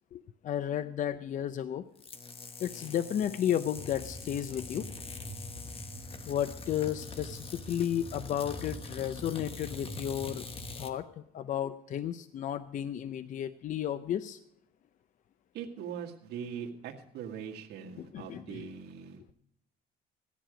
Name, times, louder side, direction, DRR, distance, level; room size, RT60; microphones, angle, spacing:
voice 1, 0.1-1.8 2.6-4.9 6.3-10.4 10.8-14.4 18.0-18.7, left 10 dB, 50° left, 13 dB, 0.5 m, -33 dB
sound 1, 2.0-10.9, left 4 dB, 35° left, 1.1 m, -45 dB
sound 2, 3.7-10.8, equal, ahead, 1.7 m, -45 dB
voice 2, 15.5-19.2, right 7 dB, 75° right, 2 dB, 1.8 m, -41 dB
15.5 x 10.5 x 5.0 m, 0.71 s
cardioid pair, 110°, 17 cm